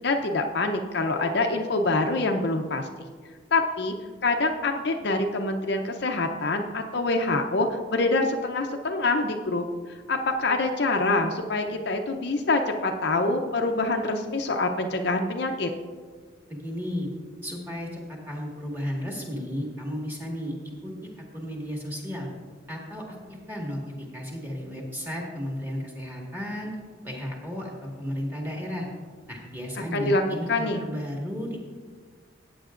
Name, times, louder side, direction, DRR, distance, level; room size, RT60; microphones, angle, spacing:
voice 1, 0.0-2.9 3.5-3.9 4.2-15.7 29.9-30.2 30.5-30.8, left 2 dB, 55° left, 3 dB, 0.6 m, -25 dB
voice 2, 16.5-17.1 17.4-20.5 20.8-22.3 22.7-23.8 24.1-26.7 27.0-28.9 29.3-31.6, equal, 10° right, -2 dB, 1.7 m, -34 dB
14.5 x 8.8 x 2.5 m, 1.5 s
head